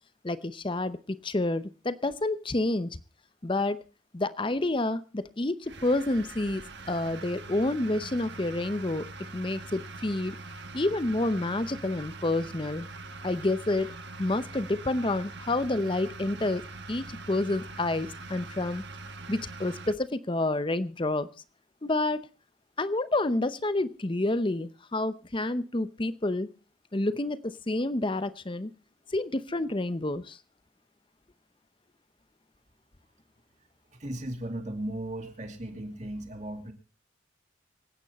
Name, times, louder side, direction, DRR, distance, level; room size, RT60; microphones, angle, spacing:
voice 1, 0.2-3.0 3.4-3.8 4.1-10.4 10.7-12.9 13.2-13.9 14.2-16.6 16.9-18.8 19.3-21.3 21.8-22.2 22.8-26.5 26.9-28.7 29.1-30.4, left 2 dB, 25° left, 14 dB, 0.7 m, -29 dB
sound 1, 5.6-19.9, right 3 dB, 55° right, 1.3 m, -43 dB
voice 2, 33.9-36.7, right 1 dB, 35° right, 4 dB, 2.4 m, -36 dB
25.5 x 9.1 x 4.2 m, 0.34 s
head